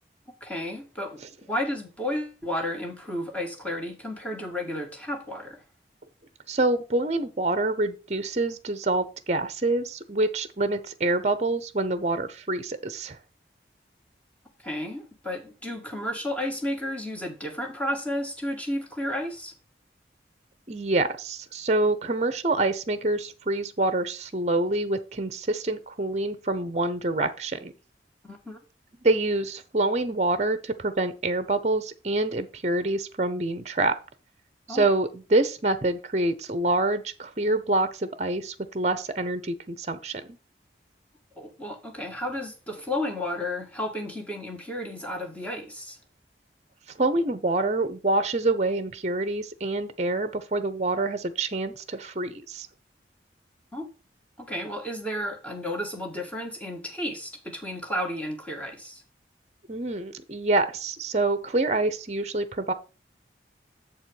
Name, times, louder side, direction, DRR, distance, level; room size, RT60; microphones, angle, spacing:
voice 1, 0.4-1.2 1.5-5.6 14.6-19.5 28.2-28.6 34.7-34.9 41.4-46.0 53.7-53.9 54.4-59.0, left 1 dB, 10° left, 1 dB, 1.7 m, -32 dB
voice 2, 6.5-13.2 20.7-27.7 29.0-34.0 34.7-40.4 47.0-52.7 59.7-62.7, right 2 dB, 40° right, 12 dB, 0.7 m, -26 dB
7.5 x 4.4 x 6.3 m, 0.33 s
head